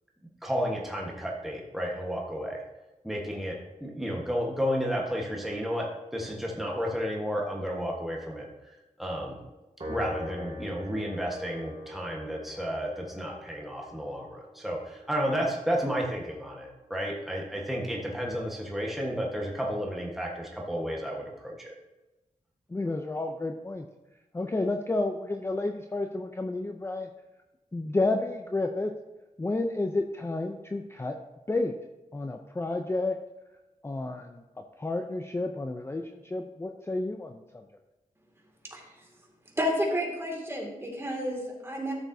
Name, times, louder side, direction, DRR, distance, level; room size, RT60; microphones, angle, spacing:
voice 1, 0.4-2.6 3.0-8.5 9.0-9.4 9.9-21.7, equal, ahead, -2 dB, 1.3 m, -32 dB
Piano, 9.8-16.4, left 1 dB, 40° right, 1.8 m, -43 dB
voice 2, 22.7-23.9 24.3-27.1 27.7-28.9 29.4-31.2 31.5-31.7 32.1-33.2 33.8-37.4, left 2 dB, 20° left, 5 dB, 0.5 m, -31 dB
voice 3, 39.6-41.9, equal, 20° right, 0 dB, 2.3 m, -30 dB
13.0 x 7.0 x 2.7 m, 1.1 s
wide cardioid pair, 95°, 14 cm